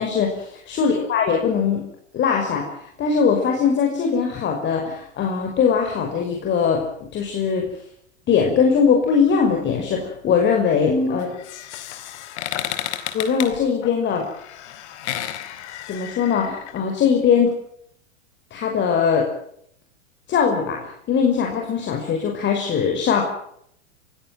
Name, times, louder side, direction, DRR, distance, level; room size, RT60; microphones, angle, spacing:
voice 1, 0.0-1.8 2.1-2.7 3.0-6.8 7.1-7.7 8.3-11.3 13.1-14.2 15.9-17.5 18.5-19.3 20.3-20.8 21.1-23.2, left 6 dB, 30° left, 1 dB, 5.7 m, -20 dB
sound 1, 11.2-16.8, left 11 dB, 60° left, 4.0 m, -32 dB
24.0 x 16.5 x 9.1 m, 0.70 s
hypercardioid pair, 120°, 38 cm